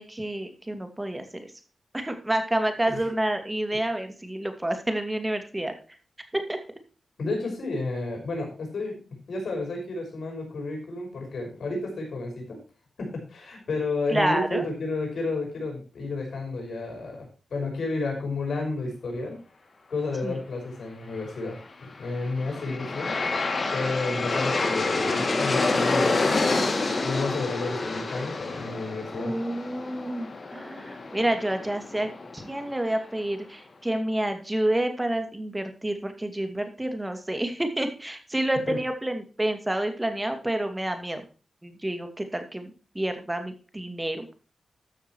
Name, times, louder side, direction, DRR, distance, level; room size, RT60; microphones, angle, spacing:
voice 1, 0.0-1.5 1.9-5.7 6.3-6.6 14.1-14.7 20.2-20.4 29.1-41.3 41.6-44.3, right 1 dB, 15° right, 7 dB, 2.3 m, -29 dB
voice 2, 7.2-12.6 13.0-19.4 19.9-23.2 23.7-26.6 27.0-29.3 38.7-38.8, left 3 dB, 75° left, 1 dB, 5.8 m, -31 dB
Aircraft, 21.9-33.0, left 3 dB, 50° left, 2.3 m, -28 dB
13.0 x 6.6 x 4.6 m, 0.36 s
cardioid pair, 75°, 0 cm